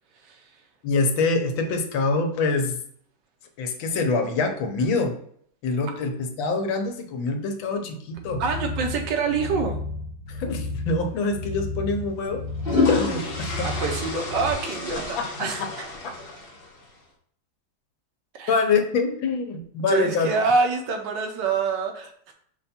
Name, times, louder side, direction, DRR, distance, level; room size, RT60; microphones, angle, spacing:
voice 1, 0.1-0.6 8.4-9.8 13.6-15.9 18.3-18.5 19.8-22.3, right 4 dB, 70° right, 4 dB, 1.2 m, -26 dB
voice 2, 0.8-2.8 3.6-5.2 5.6-8.4 10.3-12.4 12.9-13.7 15.2-15.3 18.5-20.3, left 3 dB, 80° left, 5 dB, 1.4 m, -25 dB
sound 1, 8.2-14.5, left 2 dB, 40° right, 1.0 m, -33 dB
sound 2, 10.9-11.1 12.3-16.9, left 3 dB, 55° left, 0.6 m, -29 dB
5.3 x 2.2 x 4.1 m, 0.63 s
omnidirectional pair, 2.1 m